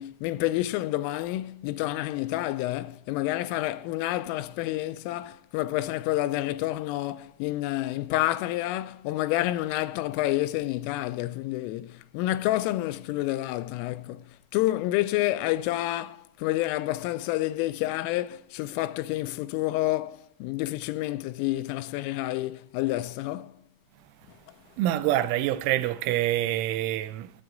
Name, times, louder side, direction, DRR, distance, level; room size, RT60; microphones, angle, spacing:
voice 1, 0.0-14.2 14.5-23.6, left 16 dB, 85° left, 3.2 m, -29 dB
voice 2, 24.8-27.3, right 14 dB, 80° right, 3.1 m, -26 dB
26.5 x 8.8 x 3.9 m
omnidirectional pair, 5.7 m